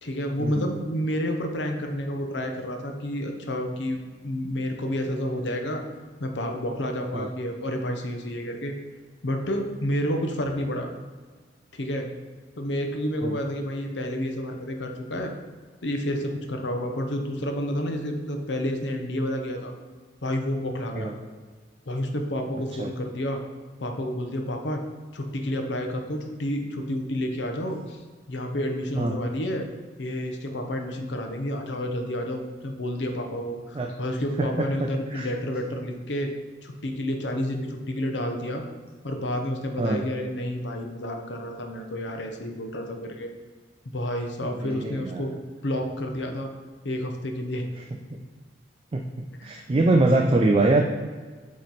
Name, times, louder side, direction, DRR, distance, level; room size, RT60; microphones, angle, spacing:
voice 1, 0.0-5.8 6.2-8.7 9.2-10.9 11.7-12.1 12.6-15.3 15.8-19.7 20.2-21.1 21.9-23.4 23.8-24.8 25.1-28.0 28.3-29.7 30.0-36.3 36.6-38.6 39.0-43.3 43.9-45.4 45.6-46.5 46.8-47.6 49.4-49.6, equal, 70° left, 4 dB, 0.8 m, -30 dB
voice 2, 34.4-35.3 39.8-40.0 44.4-45.2 48.9-49.0 49.4-50.8, right 2 dB, 30° right, 3 dB, 0.4 m, -23 dB
8.2 x 3.2 x 4.1 m, 1.5 s
head